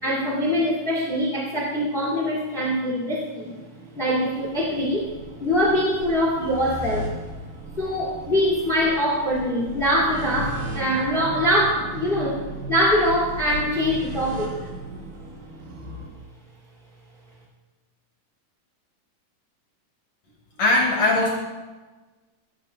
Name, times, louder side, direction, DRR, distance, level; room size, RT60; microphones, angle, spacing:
voice 1, 0.0-3.5 3.9-5.1 5.4-7.1 7.8-12.4 12.7-14.5, equal, 25° left, -4 dB, 1.2 m, -23 dB
sound 1, 3.4-16.1, right 1 dB, 85° right, 3.8 m, -36 dB
voice 2, 20.6-21.3, left 2 dB, 60° left, -2 dB, 2.0 m, -19 dB
17.0 x 8.5 x 2.8 m, 1.3 s
omnidirectional pair, 4.4 m